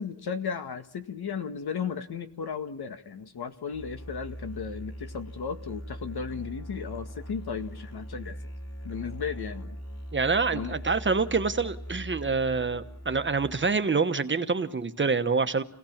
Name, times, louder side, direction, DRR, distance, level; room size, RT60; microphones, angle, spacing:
voice 1, 0.0-8.4 8.8-9.8 10.5-10.8, left 6 dB, 80° left, 8 dB, 2.0 m, -35 dB
Musical instrument, 3.7-13.9, equal, 40° left, 3.9 m, -41 dB
voice 2, 10.1-15.6, right 4 dB, 30° right, 10 dB, 1.1 m, -26 dB
29.0 x 17.5 x 7.3 m, 0.67 s
wide cardioid pair, 175°, 38 cm